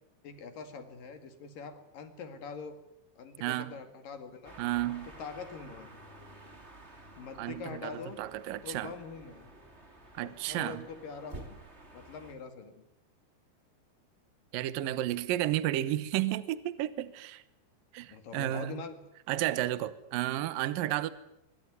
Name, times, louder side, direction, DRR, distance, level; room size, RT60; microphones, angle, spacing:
voice 1, 0.2-2.8 3.2-4.5 5.2-5.9 7.2-8.2 8.6-9.5 10.2-11.6 11.9-12.8 18.1-19.0, left 5 dB, 50° left, 3.2 m, -44 dB
voice 2, 3.4-3.7 4.6-5.1 7.4-8.9 10.1-10.9 14.5-17.4 17.9-18.8 19.3-21.1, right 14 dB, 80° right, 2.0 m, -32 dB
sound 1, 4.4-12.3, right 1 dB, 15° right, 2.6 m, -51 dB
24.0 x 22.5 x 9.4 m
omnidirectional pair, 5.7 m